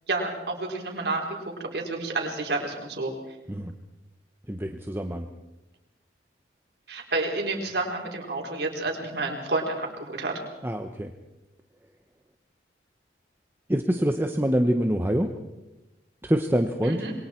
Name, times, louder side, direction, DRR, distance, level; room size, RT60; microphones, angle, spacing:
voice 1, 0.1-1.3 1.7-3.1 6.9-10.4 16.8-17.1, right 2 dB, 65° right, 1 dB, 4.3 m, -29 dB
voice 2, 4.5-5.3 10.6-11.1 13.7-15.3 16.2-17.0, equal, 15° right, 5 dB, 1.0 m, -25 dB
27.0 x 22.5 x 4.6 m, 1.0 s
head